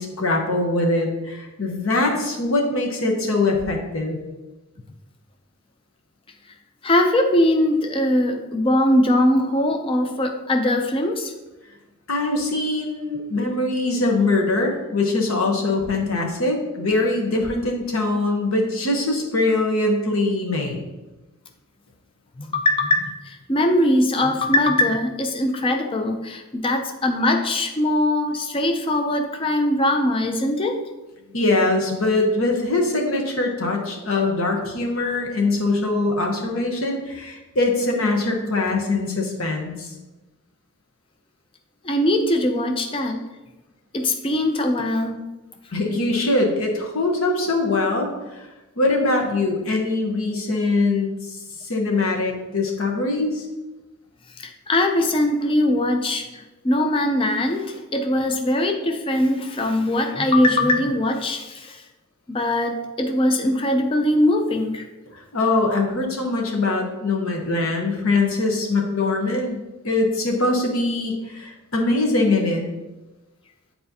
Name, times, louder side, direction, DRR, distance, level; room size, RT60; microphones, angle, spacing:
voice 1, 0.0-4.2 12.1-20.8 31.3-39.9 45.7-48.5 48.8-53.5 65.1-72.6, left 2 dB, 70° left, 1 dB, 1.1 m, -22 dB
voice 2, 6.8-11.3 22.4-30.8 41.8-43.2 43.9-45.2 54.4-61.8 62.3-64.9, left 1 dB, 25° left, 5 dB, 0.5 m, -21 dB
8.0 x 4.2 x 2.8 m, 1.1 s
head